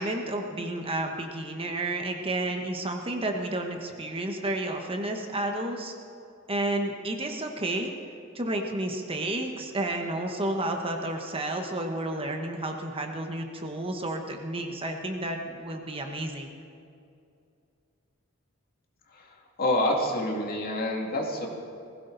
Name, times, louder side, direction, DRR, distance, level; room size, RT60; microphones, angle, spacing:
voice 1, 0.0-5.9 6.5-7.9 8.3-16.5, right 1 dB, 25° right, 3 dB, 1.2 m, -31 dB
voice 2, 19.1-21.5, left 1 dB, 45° left, 0 dB, 2.4 m, -28 dB
20.0 x 16.5 x 4.0 m, 2.5 s
head